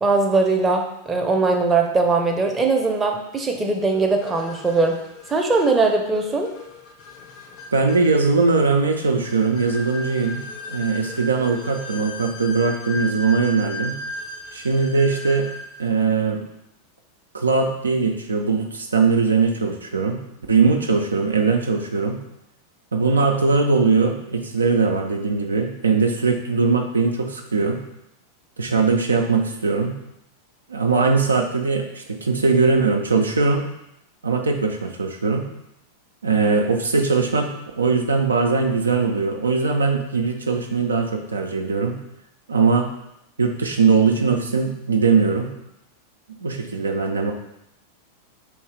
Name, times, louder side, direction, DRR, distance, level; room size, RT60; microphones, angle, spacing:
voice 1, 0.0-5.0 5.3-6.5, right 3 dB, 15° right, 1 dB, 0.6 m, -20 dB
sound 1, 3.9-15.9, left 2 dB, 40° left, 0.6 m, -36 dB
voice 2, 7.7-14.0 14.5-15.5 15.8-16.4 17.3-20.2 20.5-22.2 22.9-27.8 28.6-30.0 30.7-33.7 34.2-35.5 36.2-42.0 42.5-42.9 43.4-45.5 46.4-47.3, right 4 dB, 75° right, 3 dB, 0.4 m, -20 dB
3.2 x 3.1 x 4.6 m, 0.83 s
figure-of-eight pair, 90°, 0 cm